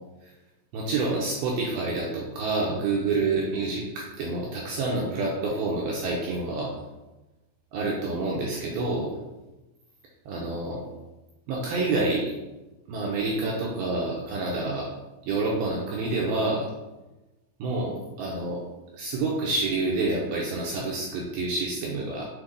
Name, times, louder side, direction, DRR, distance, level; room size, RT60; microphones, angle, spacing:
voice 1, 0.7-6.7 7.7-9.1 10.3-10.9 11.5-12.3 12.9-14.9 15.3-16.7 17.6-18.6 18.9-22.2, right 3 dB, 80° right, -3 dB, 2.3 m, -28 dB
7.5 x 3.6 x 3.9 m, 1.1 s
omnidirectional pair, 5.1 m